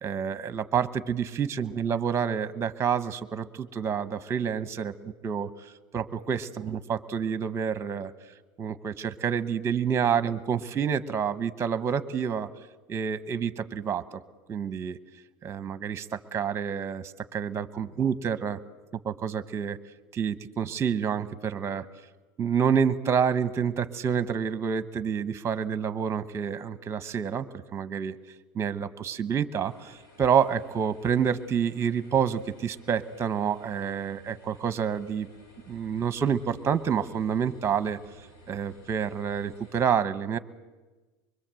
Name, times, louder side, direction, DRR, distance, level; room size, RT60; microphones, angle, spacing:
voice 1, 0.0-8.1 8.6-12.5 12.9-14.2 14.5-15.0 15.4-18.6 19.0-19.8 20.1-21.8 22.4-27.4 27.7-28.1 28.5-35.3 35.7-38.0 38.5-40.4, right 7 dB, 25° right, 14 dB, 1.1 m, -28 dB
sound 1, 29.7-39.9, left 1 dB, 90° left, 5.8 m, -55 dB
24.0 x 22.5 x 7.7 m, 1.2 s
supercardioid pair, 140°, 11 cm